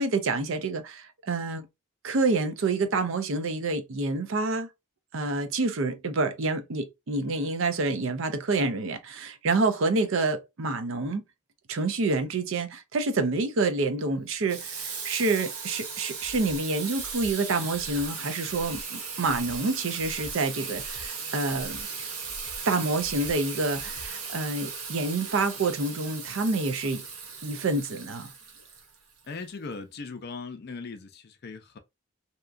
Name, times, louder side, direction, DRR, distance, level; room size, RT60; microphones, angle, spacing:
voice 1, 0.0-1.7 2.0-4.7 5.1-11.2 11.7-21.9 22.7-27.0 27.4-28.3, right 3 dB, 65° right, 0.5 m, -28 dB
Water tap faucet / Sink (filling or washing), 14.5-29.3, right 5 dB, 85° right, 0.8 m, -37 dB
Breathing, 16.2-16.6 17.0-17.3 17.7-18.1 18.5-18.8 19.2-19.6 20.0-20.3 20.7-21.1 21.5-21.8 22.2-22.6 23.0-23.3 23.7-24.1, equal, 15° left, 0.7 m, -46 dB
voice 2, 29.2-31.8, left 4 dB, 45° left, 0.4 m, -39 dB
2.8 x 2.3 x 2.4 m
head